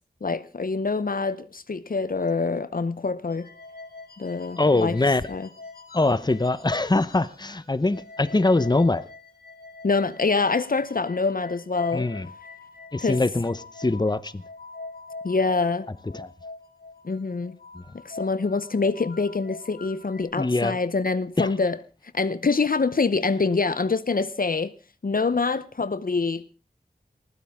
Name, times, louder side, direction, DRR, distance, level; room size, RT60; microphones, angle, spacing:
voice 1, 0.2-3.5 4.2-5.0 5.3-5.4 9.8-12.1 13.0-13.2 15.2-15.9 17.0-17.6 18.0-21.8 22.1-24.7 25.0-26.4, left 4 dB, 60° left, 0.8 m, -25 dB
sound 1, 3.3-7.6 7.9-20.2, left 3 dB, 75° left, 6.0 m, -44 dB
voice 2, 4.6-5.2 5.9-9.0 11.9-12.3 12.9-14.4 16.1-16.3 17.7-17.8 20.4-20.8 21.4-21.5, left 2 dB, 25° left, 0.9 m, -23 dB
20.0 x 15.0 x 3.6 m
wide cardioid pair, 60°, 16 cm